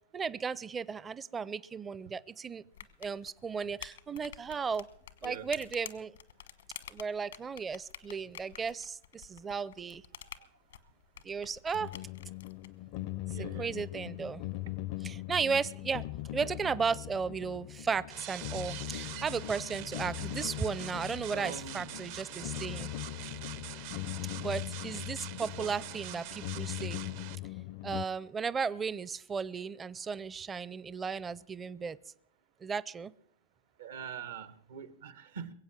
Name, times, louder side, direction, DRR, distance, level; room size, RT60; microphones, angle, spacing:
voice 1, 0.1-2.6 3.0-4.9 5.2-6.2 6.9-10.0 11.2-11.9 13.3-14.4 15.0-16.0 16.3-22.9 24.4-27.0 27.8-32.0 32.6-33.1, right 5 dB, 20° right, 19 dB, 0.5 m, -35 dB
sound 1, 2.7-12.7, left 10 dB, 85° left, 1.3 m, -49 dB
sound 2, 11.7-28.1, left 15 dB, 55° left, 0.5 m, -40 dB
voice 2, 13.3-13.8 21.3-21.9 25.6-25.7 33.8-35.5, right 7 dB, 80° right, 14 dB, 1.4 m, -43 dB
sound 3, 18.1-27.4, right 13 dB, 60° right, 0.7 m, -45 dB
22.5 x 8.0 x 7.5 m, 0.69 s
hypercardioid pair, 120°, 0 cm